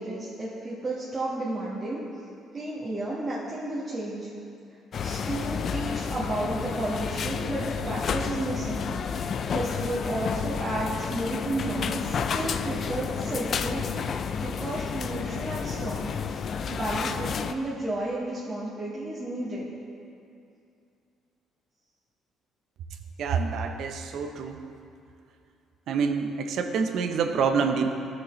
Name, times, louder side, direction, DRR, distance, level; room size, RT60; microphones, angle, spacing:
voice 1, 0.0-2.0 2.5-4.3 5.0-8.9 9.2-13.9 14.4-19.7, right 1 dB, 25° right, -9 dB, 1.5 m, -32 dB
sound 1, 4.9-17.5, left 6 dB, 50° left, 0.4 m, -31 dB
voice 2, 23.2-24.6 25.9-27.9, right 5 dB, 65° right, 6 dB, 0.7 m, -27 dB
14.5 x 6.3 x 3.2 m, 2.5 s
cardioid pair, 115°, 0 cm